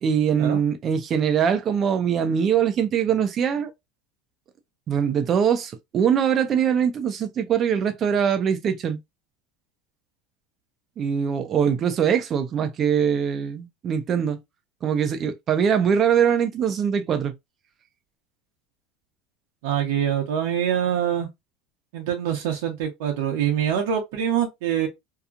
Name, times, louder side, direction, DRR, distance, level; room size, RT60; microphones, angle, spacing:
voice 1, 0.0-3.7 4.9-9.0 11.0-14.4 14.8-17.3, right 8 dB, 35° right, 0.6 m, -22 dB
voice 2, 19.6-21.3 21.9-24.9, right 9 dB, 75° right, 0.9 m, -24 dB
2.8 x 2.3 x 2.4 m
supercardioid pair, 115°, 0 cm